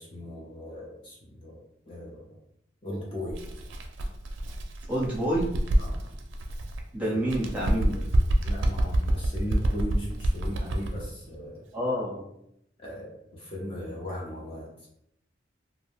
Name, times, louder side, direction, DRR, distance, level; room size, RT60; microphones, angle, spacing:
voice 1, 0.0-1.6 1.9-2.4 2.8-3.4 5.8-6.1 7.0-7.1 8.4-11.6 12.8-14.7, left 1 dB, 30° left, -5 dB, 0.6 m, -37 dB
Bird, 3.3-6.8 7.2-11.1, right 1 dB, 85° right, 0.4 m, -27 dB
voice 2, 4.9-5.5 6.9-8.0 11.7-12.2, equal, 5° right, -7 dB, 0.7 m, -28 dB
2.4 x 2.1 x 3.4 m, 0.78 s
head